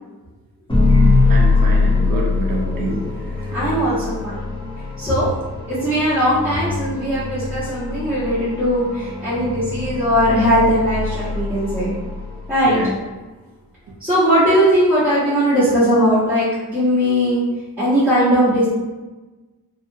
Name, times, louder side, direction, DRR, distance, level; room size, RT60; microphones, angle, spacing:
sound 1, 0.7-12.9, left 3 dB, 15° left, 0.6 m, -22 dB
voice 1, 1.3-3.0 3.5-3.6 12.6-12.9, right 2 dB, 60° right, -2 dB, 0.5 m, -26 dB
voice 2, 3.5-4.4 5.0-5.3 5.7-11.9 12.5-12.8 14.0-17.4 17.8-18.7, equal, 5° right, -15 dB, 1.0 m, -18 dB
2.7 x 2.4 x 2.7 m, 1.2 s
wide cardioid pair, 110°, 38 cm